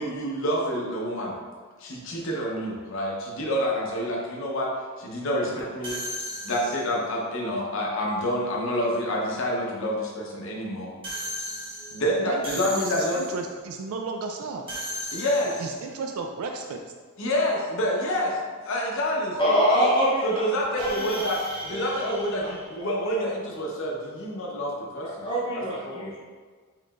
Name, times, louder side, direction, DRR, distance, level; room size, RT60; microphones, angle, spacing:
voice 1, 0.0-1.4 1.8-4.7 5.0-6.0 6.4-11.0 11.9-13.2 15.1-15.6 17.2-18.3 18.6-19.9 20.2-25.3 25.5-26.1, equal, 65° left, -1 dB, 0.7 m, -28 dB
high pitch stab, 5.8-7.1 11.0-13.6 14.7-15.9 20.8-23.3, equal, 25° right, 0.8 m, -36 dB
voice 2, 12.3-14.7 15.6-16.8, right 4 dB, 80° right, 3 dB, 0.3 m, -33 dB
voice 3, 19.4-20.4 20.8-21.2 21.7-22.8 25.0-26.2, equal, 20° left, -8 dB, 0.6 m, -25 dB
4.7 x 3.1 x 2.3 m, 1.5 s
head